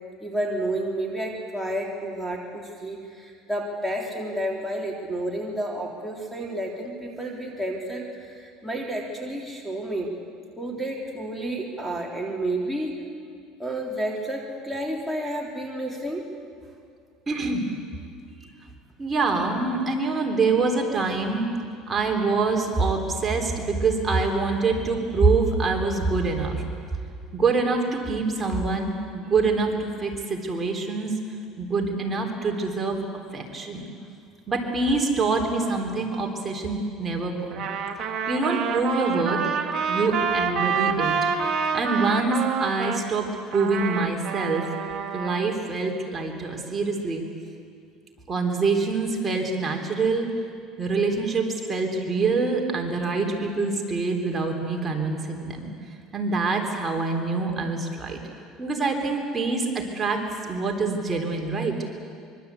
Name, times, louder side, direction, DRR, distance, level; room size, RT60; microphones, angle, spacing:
voice 1, 0.2-10.1 10.6-12.9 13.6-16.3, right 1 dB, ahead, -3 dB, 3.4 m, -30 dB
voice 2, 17.3-17.7 19.0-21.5 21.9-26.6 27.3-31.1 31.6-33.0 33.3-33.9 34.5-37.6 38.3-39.4 39.9-44.7 45.1-47.2 48.3-50.3 50.8-55.7 56.1-58.2 58.6-61.8, right 3 dB, 20° right, 1 dB, 3.6 m, -25 dB
Trumpet, 37.5-43.0 43.5-45.5, right 6 dB, 45° right, 2.4 m, -27 dB
25.5 x 24.0 x 8.4 m, 2.3 s
supercardioid pair, 120°, 0 cm